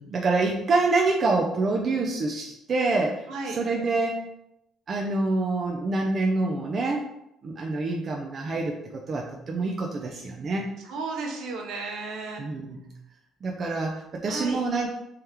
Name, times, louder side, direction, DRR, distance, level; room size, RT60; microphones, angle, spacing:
voice 1, 0.0-4.2 4.9-7.1 7.4-10.7 12.4-12.8 13.4-14.9, right 3 dB, 30° right, -1 dB, 0.4 m, -26 dB
voice 2, 10.9-12.4 14.3-14.6, right 3 dB, 65° right, 1 dB, 0.8 m, -33 dB
3.5 x 3.0 x 3.3 m, 0.85 s
cardioid pair, 160°, 0 cm